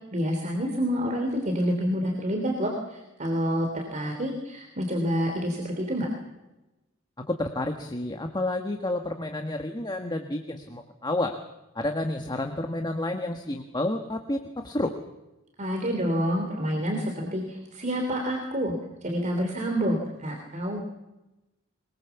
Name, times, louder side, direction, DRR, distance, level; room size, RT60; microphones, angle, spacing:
voice 1, 0.1-6.1 15.6-18.7 19.0-20.8, equal, 35° right, 2 dB, 3.3 m, -28 dB
voice 2, 7.3-11.4 11.7-14.9, left 1 dB, 20° left, 5 dB, 1.5 m, -30 dB
23.0 x 21.5 x 7.0 m, 0.99 s
head